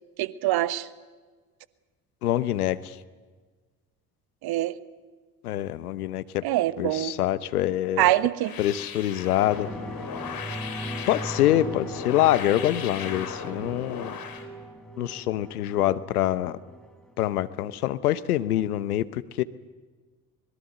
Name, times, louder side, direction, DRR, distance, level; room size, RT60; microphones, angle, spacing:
voice 1, 0.2-0.9 4.4-4.7 6.4-7.2 8.0-8.5, right 15 dB, 55° right, 16 dB, 1.3 m, -24 dB
voice 2, 2.2-2.9 5.4-6.4 6.8-8.1 8.6-9.7 11.1-14.2 15.0-16.5 17.2-19.4, left 13 dB, 85° left, 16 dB, 1.0 m, -25 dB
sound 1, 8.4-14.5, left 7 dB, 50° left, 3.7 m, -37 dB
sound 2, 9.2-18.2 18.6-18.7, right 1 dB, ahead, 4.2 m, -39 dB
25.0 x 21.5 x 7.9 m, 1.4 s
hypercardioid pair, 55°, 44 cm